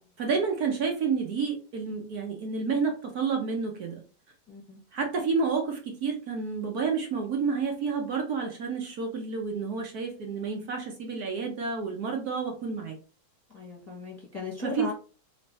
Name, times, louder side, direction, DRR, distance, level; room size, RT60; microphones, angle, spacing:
voice 1, 0.2-4.0 4.9-12.9 14.6-14.9, right 5 dB, 65° right, 2 dB, 1.3 m, -30 dB
voice 2, 4.5-4.8 13.5-14.9, left 4 dB, 10° left, -3 dB, 1.3 m, -37 dB
3.3 x 3.1 x 4.2 m, 0.37 s
omnidirectional pair, 1.8 m